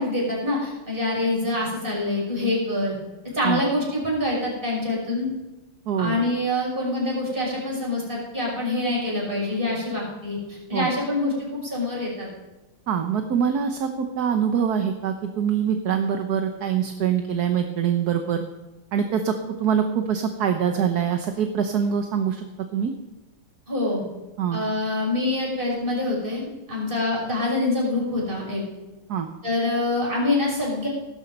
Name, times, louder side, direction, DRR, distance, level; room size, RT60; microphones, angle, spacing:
voice 1, 0.0-2.9 3.2-5.3 6.0-11.3 11.6-12.3 23.7-24.0 24.5-28.6 29.4-30.9, left 2 dB, 25° right, -3 dB, 6.2 m, -25 dB
voice 2, 5.9-6.2 10.7-10.9 12.9-18.4 18.9-19.3 19.6-22.4 22.7-22.9 24.4-24.6 29.1-29.3, right 8 dB, 55° right, 5 dB, 1.3 m, -24 dB
17.0 x 12.5 x 5.4 m, 1.1 s
omnidirectional pair, 2.3 m